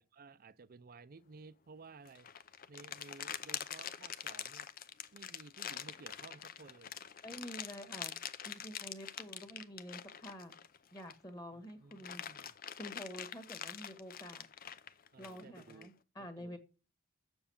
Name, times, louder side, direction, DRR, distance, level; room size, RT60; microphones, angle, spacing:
voice 1, 0.0-2.3 2.7-4.7 5.1-6.9 11.5-12.5 15.1-15.9 16.2-16.6, right 4 dB, 45° right, 0.5 m, -56 dB
sound 1, 2.0-11.3 11.7-15.9, left 9 dB, 45° left, 0.6 m, -45 dB
voice 2, 7.2-8.1 8.4-10.5 10.9-12.5 12.8-14.5 15.2-16.6, equal, 20° left, 1.6 m, -48 dB
7.6 x 7.1 x 7.1 m
head